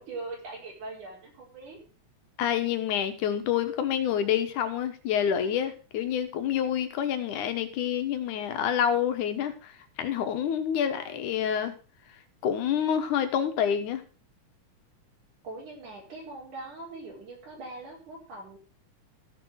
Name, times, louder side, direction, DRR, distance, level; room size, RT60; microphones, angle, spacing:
voice 1, 0.0-1.8 15.4-18.6, right 2 dB, 85° right, -2 dB, 6.4 m, -41 dB
voice 2, 2.4-11.7 12.4-14.0, left 9 dB, 90° left, 9 dB, 2.7 m, -28 dB
15.0 x 6.5 x 6.3 m, 0.37 s
omnidirectional pair, 3.4 m